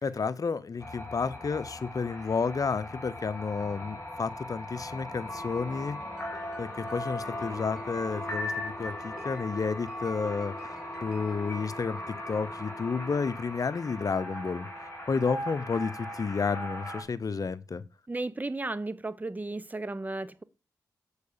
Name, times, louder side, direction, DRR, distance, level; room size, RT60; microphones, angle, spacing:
voice 1, 0.0-6.0 6.6-17.8, left 5 dB, 55° left, 0.7 m, -31 dB
sound 1, 0.8-17.0, left 1 dB, 25° left, 3.7 m, -38 dB
Piano, 6.0-12.5, equal, 5° right, 4.1 m, -53 dB
voice 2, 18.1-20.4, right 2 dB, 25° right, 0.8 m, -34 dB
6.8 x 4.8 x 6.7 m
cardioid pair, 50°, 7 cm